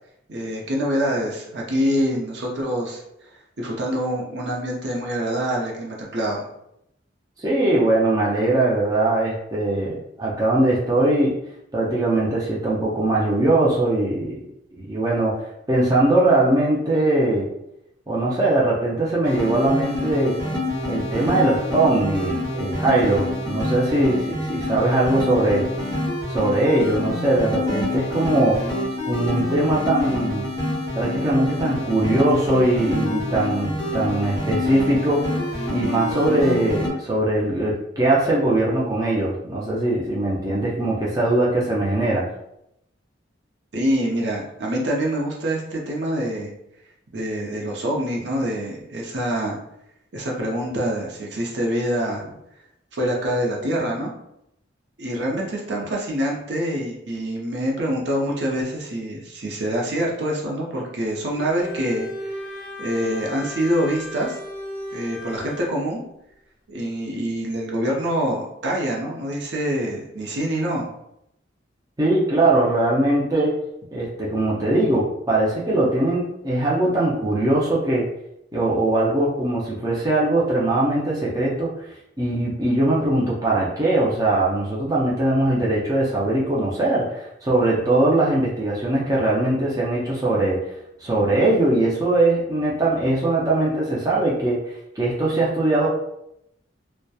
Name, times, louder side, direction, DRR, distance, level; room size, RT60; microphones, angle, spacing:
voice 1, 0.3-3.0 3.6-6.5 43.7-46.5 47.1-49.6 50.1-52.3 52.9-54.1 55.0-64.4 64.9-66.0 66.7-70.9, equal, 65° right, -2 dB, 0.6 m, -25 dB
voice 2, 7.4-11.4 11.7-14.5 14.8-17.5 18.1-20.4 20.9-25.7 26.3-28.6 29.1-30.5 31.0-35.4 35.7-42.3 72.0-73.6 73.9-78.1 78.5-81.7 82.2-90.7 91.0-94.6 95.0-95.9, right 2 dB, 20° right, -6 dB, 0.4 m, -21 dB
sound 1, 19.2-36.9, left 2 dB, 20° left, 0.8 m, -27 dB
Bowed string instrument, 61.3-65.8, left 1 dB, 50° left, 0.6 m, -35 dB
2.8 x 2.1 x 2.2 m, 0.79 s
head